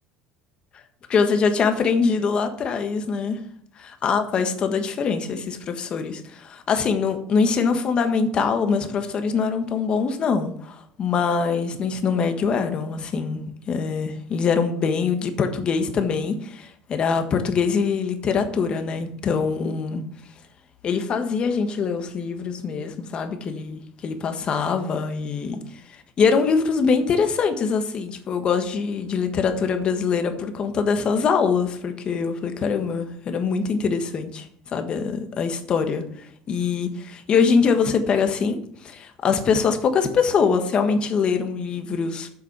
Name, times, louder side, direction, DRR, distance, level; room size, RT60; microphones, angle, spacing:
voice 1, 1.1-3.4 3.8-13.4 13.7-20.0 20.8-25.6 26.2-36.0 36.5-42.3, left 5 dB, 40° left, 7 dB, 1.4 m, -23 dB
7.8 x 6.0 x 6.8 m, 0.66 s
supercardioid pair, 115°, 3 cm